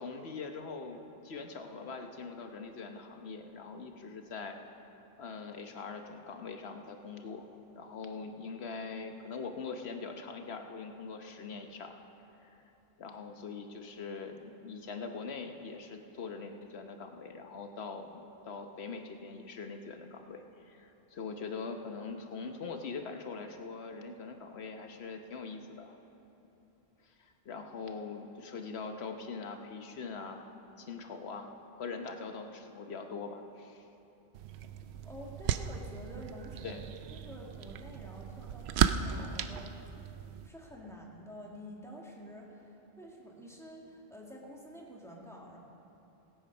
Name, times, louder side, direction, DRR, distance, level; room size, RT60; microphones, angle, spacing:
voice 1, 0.0-4.6 5.2-11.9 12.4-12.5 13.0-26.0 27.0-30.5 30.8-31.5 31.8-33.9 36.6-36.8, left 4 dB, 85° left, 5 dB, 1.2 m, -42 dB
sound 1, 34.3-40.5, right 8 dB, 90° right, 0.8 m, -35 dB
voice 2, 35.0-36.8 37.1-39.8 40.4-45.6, equal, 5° left, -3 dB, 1.8 m, -49 dB
18.5 x 8.5 x 5.4 m, 3.0 s
omnidirectional pair, 1.1 m